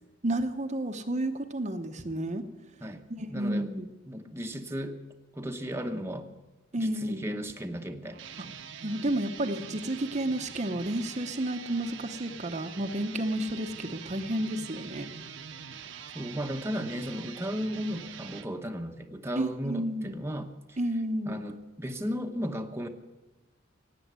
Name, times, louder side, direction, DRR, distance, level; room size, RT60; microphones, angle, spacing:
voice 1, 0.2-2.4 3.2-3.9 6.7-7.2 8.8-15.1 19.4-20.2 20.8-21.4, right 1 dB, 35° right, 6 dB, 0.8 m, -31 dB
voice 2, 2.8-3.7 4.1-5.0 5.3-6.3 6.8-8.2 16.1-20.8 21.3-22.9, equal, 15° right, 4 dB, 0.9 m, -35 dB
sound 1, 8.1-18.5, right 7 dB, 65° right, 0.9 m, -44 dB
17.5 x 8.5 x 9.4 m, 1.1 s
head